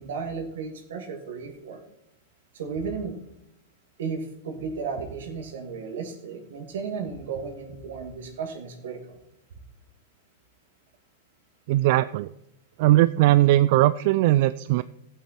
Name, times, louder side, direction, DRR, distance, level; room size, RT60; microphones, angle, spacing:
voice 1, 0.0-1.8 2.5-3.2 4.0-9.2, right 5 dB, 80° right, 3 dB, 2.5 m, -34 dB
voice 2, 11.7-12.3 12.8-14.8, right 15 dB, 55° right, 14 dB, 0.3 m, -19 dB
15.5 x 8.3 x 4.4 m, 0.86 s
supercardioid pair, 140°, 0 cm